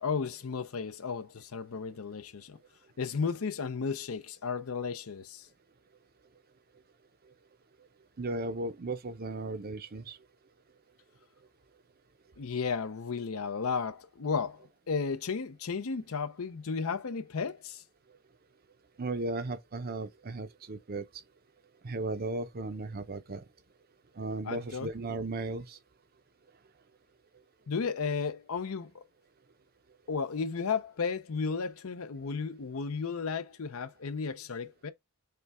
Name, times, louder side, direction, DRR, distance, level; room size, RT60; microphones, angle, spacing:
voice 1, 0.0-2.6 3.0-5.5 12.4-17.8 24.4-24.9 27.7-29.0 30.1-34.9, left 5 dB, 65° left, 0.6 m, -34 dB
voice 2, 8.2-10.2 19.0-21.1 21.8-23.4 24.2-25.8, right 2 dB, 40° right, 0.6 m, -36 dB
6.8 x 2.3 x 3.4 m
head